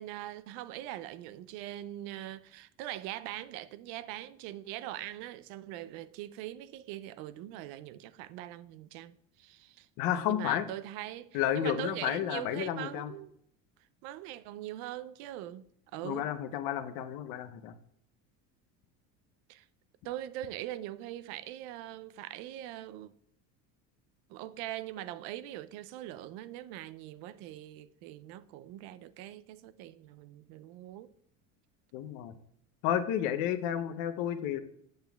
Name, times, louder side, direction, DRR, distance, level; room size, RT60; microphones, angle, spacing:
voice 1, 0.0-9.9 10.3-13.3 14.0-16.3 19.5-19.7 20.0-23.1 24.3-31.1, right 13 dB, 75° right, 0.5 m, -42 dB
voice 2, 10.0-10.7 11.3-13.1 16.0-17.7 31.9-32.3 32.8-34.6, left 10 dB, 70° left, 0.7 m, -31 dB
7.9 x 7.0 x 2.3 m
supercardioid pair, 95°, 38 cm